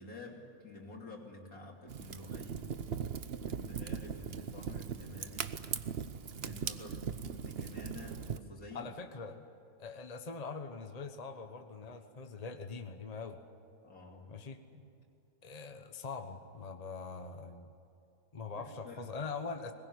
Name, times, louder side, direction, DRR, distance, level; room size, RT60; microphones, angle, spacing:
voice 1, 0.0-2.7 3.4-5.5 6.4-8.9 13.8-14.3 14.7-14.9 18.6-19.1, left 2 dB, 75° left, 0 dB, 3.7 m, -50 dB
Fire, 1.9-8.4, right 7 dB, 50° right, 0.9 m, -39 dB
voice 2, 8.7-9.4 9.8-13.4 14.3-14.6 15.4-17.7 18.3-19.7, left 4 dB, 30° left, 6 dB, 1.2 m, -43 dB
22.5 x 20.5 x 9.8 m, 2.6 s
omnidirectional pair, 1.5 m